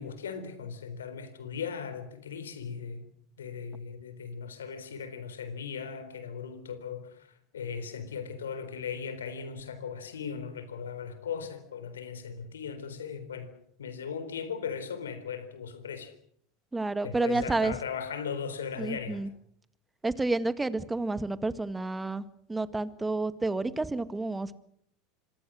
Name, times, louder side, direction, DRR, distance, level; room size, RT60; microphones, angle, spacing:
voice 1, 0.0-3.0 3.4-13.5 13.8-16.1 17.0-19.2, left 6 dB, 85° left, 4.0 m, -38 dB
voice 2, 16.7-17.8 18.8-19.3 20.0-24.6, right 2 dB, 10° right, 1.8 m, -30 dB
26.5 x 23.5 x 6.3 m
hypercardioid pair, 85°, 0 cm